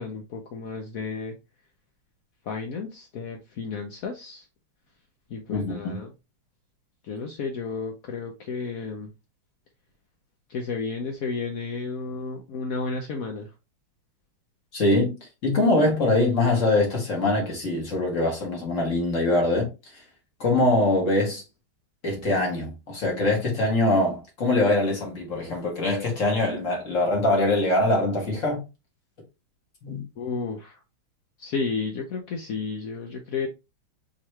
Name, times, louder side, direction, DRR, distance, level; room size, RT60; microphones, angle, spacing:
voice 1, 0.0-1.3 2.5-4.4 5.3-6.1 7.0-9.1 10.5-13.5 30.2-30.8 31.4-33.5, left 4 dB, 90° left, 0.7 m, -32 dB
voice 2, 5.5-6.0 14.7-15.1 15.4-19.7 20.4-21.4 22.0-28.6 29.8-30.0, left 2 dB, 40° left, 1.7 m, -23 dB
4.7 x 3.0 x 3.2 m
omnidirectional pair, 2.4 m